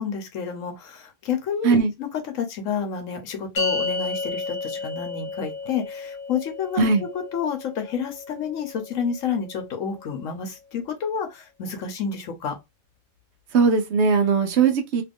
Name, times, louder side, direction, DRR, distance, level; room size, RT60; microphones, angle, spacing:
voice 1, 0.0-2.1 2.3-6.8 7.3-12.6, left 6 dB, 85° left, 1.2 m, -30 dB
sound 1, 3.6-10.1, left 4 dB, 45° left, 0.8 m, -32 dB
voice 2, 13.5-15.0, right 5 dB, 65° right, 0.9 m, -19 dB
2.9 x 2.5 x 3.4 m
omnidirectional pair, 1.3 m